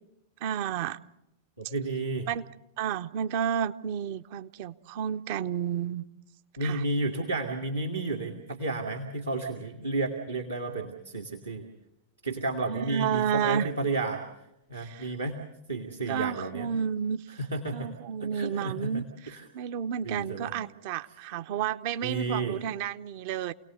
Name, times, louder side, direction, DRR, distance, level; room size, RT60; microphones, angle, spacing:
voice 1, 0.4-1.0 2.3-2.4 2.8-6.0 6.6-6.8 12.7-13.7 14.8-15.1 16.1-17.2 17.7-23.5, right 8 dB, 50° right, 13 dB, 0.7 m, -31 dB
voice 2, 1.6-2.3 6.6-11.7 12.2-14.2 14.7-15.4 15.7-16.7 17.3-17.9 18.2-19.0 19.3-19.4 20.0-20.5 22.0-22.6, right 2 dB, 80° right, 1 dB, 2.0 m, -32 dB
28.5 x 18.5 x 6.6 m, 0.87 s
figure-of-eight pair, 90°, 0 cm